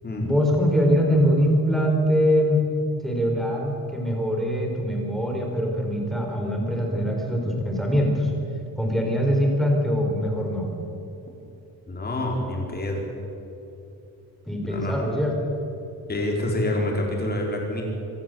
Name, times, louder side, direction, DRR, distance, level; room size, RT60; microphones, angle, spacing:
voice 1, 0.2-2.6 3.0-8.3 8.8-10.7 14.5-15.4, equal, ahead, 0 dB, 4.1 m, -23 dB
voice 2, 11.9-13.0 14.7-15.0 16.1-17.8, left 1 dB, 25° left, 0 dB, 4.5 m, -27 dB
25.5 x 15.0 x 7.9 m, 2.8 s
cardioid pair, 170°, 39 cm